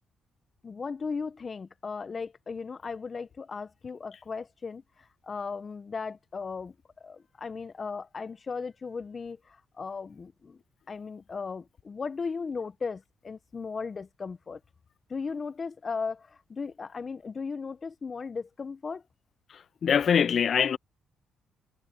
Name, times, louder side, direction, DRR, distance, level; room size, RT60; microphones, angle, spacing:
voice 1, 0.6-10.6 10.9-14.6 15.1-19.0, left 5 dB, 35° left, 0.9 m, -37 dB
voice 2, 19.8-20.8, left 7 dB, 55° left, 0.4 m, -23 dB
cardioid pair, 90°, 0 cm